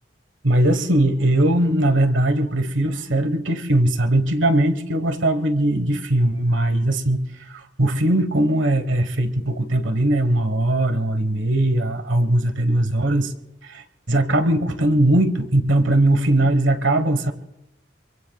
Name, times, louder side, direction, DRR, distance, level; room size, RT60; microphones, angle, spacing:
voice 1, 0.4-13.3 13.6-17.3, right 1 dB, 75° right, 10 dB, 1.4 m, -20 dB
25.5 x 23.5 x 2.4 m, 0.89 s
head